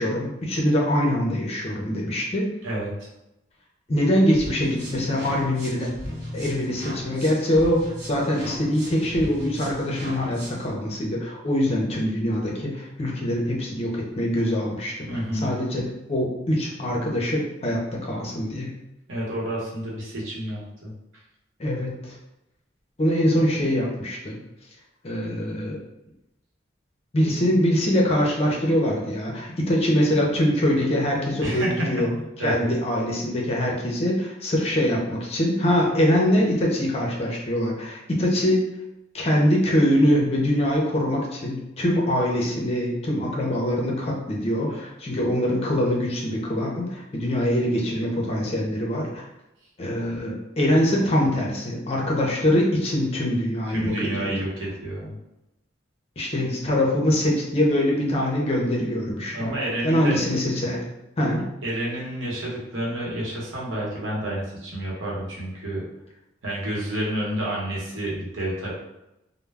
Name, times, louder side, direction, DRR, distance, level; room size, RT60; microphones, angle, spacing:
voice 1, 0.0-2.5 3.9-5.9 6.3-15.1 15.4-18.7 21.6-22.2 23.0-24.4 25.0-25.8 27.1-32.1 32.4-38.6 39.1-49.2 49.8-54.3 56.2-59.5 59.8-60.8 61.2-61.4, equal, 30° left, -2 dB, 0.5 m, -23 dB
sound 1, 4.3-10.7, equal, 60° right, 1.1 m, -37 dB
voice 2, 15.1-15.6 19.1-20.9 31.4-31.9 32.4-32.5 53.7-55.2 59.1-60.2 61.6-65.8 66.4-68.7, right 1 dB, 90° right, -4 dB, 0.9 m, -29 dB
2.2 x 2.0 x 3.3 m, 0.91 s
head